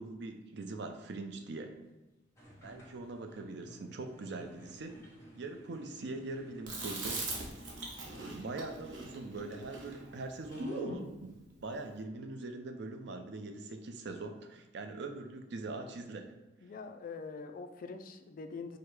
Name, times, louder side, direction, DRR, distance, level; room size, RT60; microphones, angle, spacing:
voice 1, 0.0-1.7 2.6-4.9 5.4-7.2 8.1-11.3 11.6-16.3, right 3 dB, 65° right, 6 dB, 0.5 m, -42 dB
sound 1, 2.4-10.9, equal, 15° left, 1.0 m, -55 dB
Chewing mastication, 6.7-11.1, right 2 dB, 90° right, 1.0 m, -40 dB
voice 2, 16.6-18.8, left 4 dB, 50° left, 8 dB, 0.3 m, -44 dB
4.8 x 2.1 x 4.6 m, 1.1 s
head